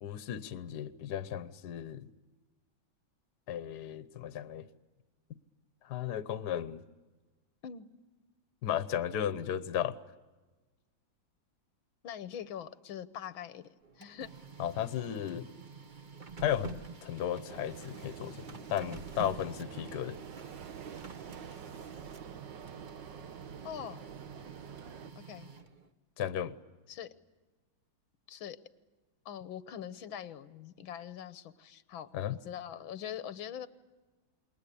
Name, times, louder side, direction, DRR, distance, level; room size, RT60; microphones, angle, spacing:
voice 1, 0.0-2.1 3.5-4.7 5.8-6.8 8.6-10.0 14.6-15.5 16.4-20.2 26.2-26.5 32.1-32.4, left 10 dB, 60° left, 14 dB, 1.5 m, -35 dB
voice 2, 12.0-14.3 23.6-24.0 25.2-25.5 26.9-27.1 28.3-28.6 29.3-33.7, left 9 dB, 90° left, 14 dB, 1.8 m, -43 dB
Printer, 13.8-25.9, right 5 dB, 30° right, 1.1 m, -49 dB
sound 1, 17.5-25.1, right 7 dB, 70° right, 1.6 m, -47 dB
28.0 x 22.0 x 8.4 m, 1.3 s
omnidirectional pair, 2.1 m